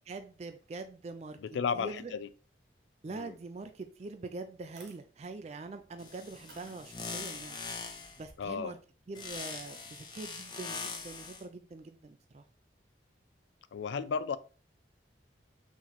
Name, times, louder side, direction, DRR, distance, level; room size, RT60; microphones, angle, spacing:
voice 1, 0.0-1.4 1.7-2.1 3.0-7.6 8.2-8.8 9.1-12.4, right 3 dB, 35° right, 0.3 m, -44 dB
voice 2, 1.4-2.3 3.1-3.3 8.4-8.7 13.7-14.4, left 6 dB, 80° left, 0.3 m, -34 dB
sound 1, 4.0-4.1 4.6-5.0 5.8-5.9 6.5-7.2 8.2-8.6, right 3 dB, 75° right, 1.1 m, -56 dB
sound 2, 6.0-8.2 9.2-11.4, left 4 dB, 25° left, 0.6 m, -42 dB
3.9 x 3.0 x 4.1 m
head